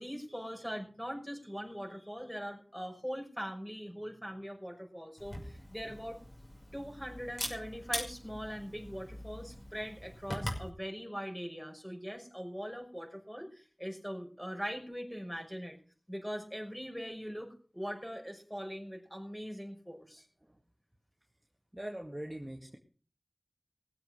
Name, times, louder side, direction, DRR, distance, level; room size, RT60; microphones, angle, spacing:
voice 1, 0.0-6.2 6.7-15.8 16.1-20.2, equal, 5° left, 2 dB, 6.0 m, -41 dB
Camera, 5.2-10.7, left 1 dB, 50° left, 5.7 m, -42 dB
voice 2, 21.7-22.8, right 1 dB, 20° right, 2 dB, 2.0 m, -41 dB
20.0 x 7.8 x 6.5 m, 0.41 s
wide cardioid pair, 45°, 0 cm